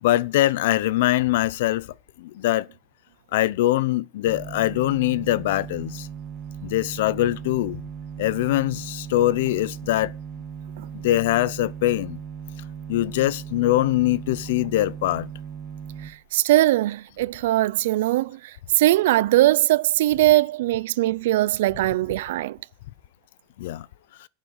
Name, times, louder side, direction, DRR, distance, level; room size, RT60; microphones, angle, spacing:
voice 1, 0.0-2.7 3.3-6.1 6.6-7.8 8.2-10.1 10.9-12.2 12.9-15.3 23.6-23.9, left 15 dB, 75° left, 0.6 m, -23 dB
sound 1, 4.2-16.1, right 8 dB, 30° right, 1.4 m, -37 dB
voice 2, 16.0-22.6, right 16 dB, 75° right, 0.5 m, -21 dB
8.9 x 7.3 x 8.0 m
supercardioid pair, 155°, 0 cm